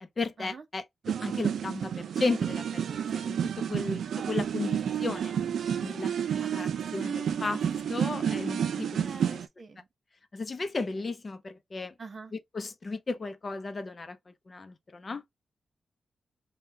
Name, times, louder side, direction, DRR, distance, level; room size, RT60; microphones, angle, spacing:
voice 1, 0.0-3.4 3.7-5.3 5.8-9.4 10.3-11.9 12.3-14.2 14.5-15.2, left 3 dB, 40° left, 0.6 m, -35 dB
sound 1, 1.0-9.5, right 8 dB, 85° right, 0.4 m, -30 dB
voice 2, 9.0-9.8 12.0-12.3, right 4 dB, 45° right, 0.8 m, -45 dB
3.6 x 2.3 x 2.7 m
cardioid pair, 100°, 0 cm